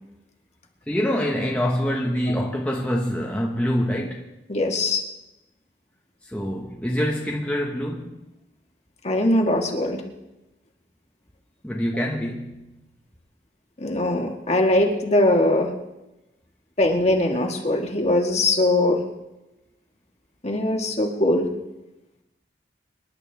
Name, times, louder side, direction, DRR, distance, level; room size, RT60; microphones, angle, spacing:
voice 1, 0.9-4.4 6.2-8.2 11.6-12.7, equal, 5° left, -2 dB, 1.3 m, -25 dB
voice 2, 4.5-5.0 9.0-10.0 13.8-15.7 16.8-19.0 20.4-21.5, left 1 dB, 35° left, 2 dB, 1.8 m, -21 dB
26.5 x 11.0 x 3.5 m, 0.97 s
head